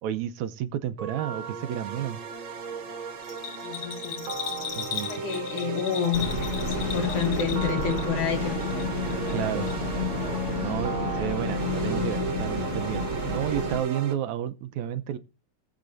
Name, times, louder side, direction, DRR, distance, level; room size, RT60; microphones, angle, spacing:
voice 1, 0.0-2.2 4.7-5.1 9.3-9.7 10.5-15.2, right 11 dB, 75° right, 2.0 m, -31 dB
sound 1, 1.0-14.1, right 5 dB, 50° right, 1.7 m, -36 dB
Bell, 3.2-8.3 8.6-9.4 9.7-9.8, left 8 dB, 55° left, 3.4 m, -36 dB
voice 2, 3.6-8.9, left 7 dB, 80° left, 3.4 m, -31 dB
sound 2, 6.1-13.8, left 2 dB, 30° left, 1.5 m, -30 dB
20.0 x 7.9 x 2.6 m
omnidirectional pair, 3.5 m